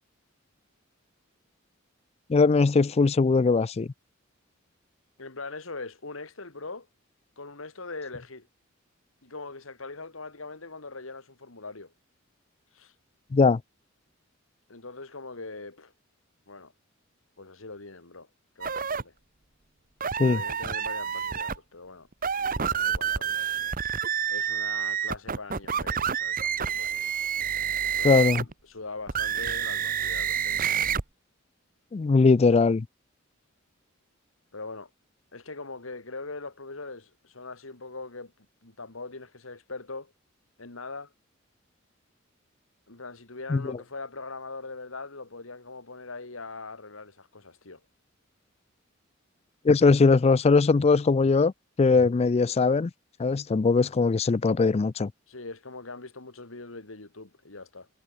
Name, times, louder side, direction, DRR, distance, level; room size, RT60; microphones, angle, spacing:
voice 1, 2.3-3.9 13.3-13.6 20.2-20.4 28.0-28.4 31.9-32.8 43.5-43.6 49.6-51.5 51.8-52.9 53.2-55.1, left 4 dB, 30° left, 0.4 m, -20 dB
voice 2, 5.2-6.9 7.4-8.5 9.2-11.9 12.7-12.9 14.7-15.9 16.5-16.7 17.4-18.3 18.6-19.1 20.2-22.1 22.4-23.5 24.3-27.3 27.8-30.8 34.5-34.9 35.3-38.3 38.6-40.1 40.6-41.1 42.9-47.8 55.3-57.9, left 3 dB, 80° left, 2.4 m, -41 dB
sound 1, 18.6-19.0 20.0-21.6 22.1-28.5 29.1-31.0, right 8 dB, 45° right, 1.1 m, -28 dB
head